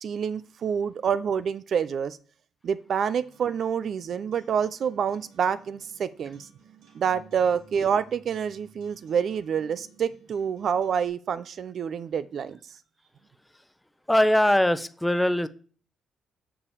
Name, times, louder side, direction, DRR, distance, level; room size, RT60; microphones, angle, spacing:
voice 1, 0.0-2.2 2.6-6.5 6.9-12.6, right 7 dB, 60° right, 0.5 m, -27 dB
Acoustic guitar, 3.1-11.1, right 5 dB, 90° right, 2.7 m, -56 dB
voice 2, 14.1-15.5, left 1 dB, 5° left, 0.7 m, -21 dB
7.0 x 5.1 x 7.2 m
cardioid pair, 90°, 0 cm